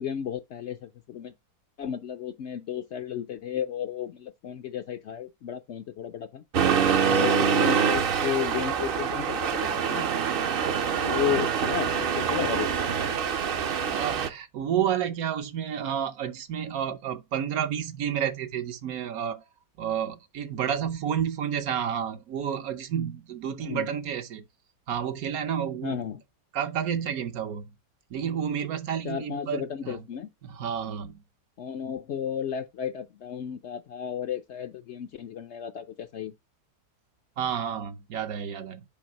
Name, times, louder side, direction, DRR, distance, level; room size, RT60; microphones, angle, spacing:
voice 1, 0.0-1.3 1.8-6.4 7.0-10.1 11.0-12.7 23.6-23.9 25.8-26.2 29.0-30.3 31.6-36.3, left 9 dB, 65° left, 0.7 m, -33 dB
Accelerating revving vroom, 6.5-14.3, right 7 dB, 55° right, 0.6 m, -25 dB
voice 2, 13.9-19.4 19.8-24.4 24.9-26.0 26.5-27.6 28.1-30.1 30.4-31.2 37.4-38.8, right 8 dB, 75° right, 1.2 m, -30 dB
6.9 x 5.3 x 2.9 m
omnidirectional pair, 1.6 m